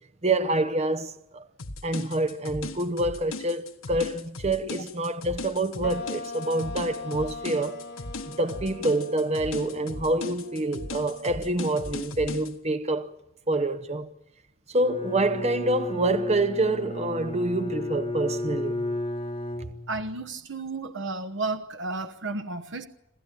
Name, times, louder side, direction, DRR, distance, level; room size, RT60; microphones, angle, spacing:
voice 1, 0.2-1.4 1.8-7.8 8.3-13.1 13.5-14.1 14.7-18.8, right 2 dB, 30° right, 0.8 m, -27 dB
sound 1, 1.6-12.5, left 3 dB, 75° left, 1.6 m, -38 dB
sound 2, 5.8-12.5, left 3 dB, 50° left, 2.7 m, -41 dB
Bowed string instrument, 14.8-20.3, left 2 dB, 30° left, 1.9 m, -33 dB
voice 2, 19.9-22.9, right 3 dB, 55° right, 1.0 m, -32 dB
27.5 x 14.0 x 9.1 m
head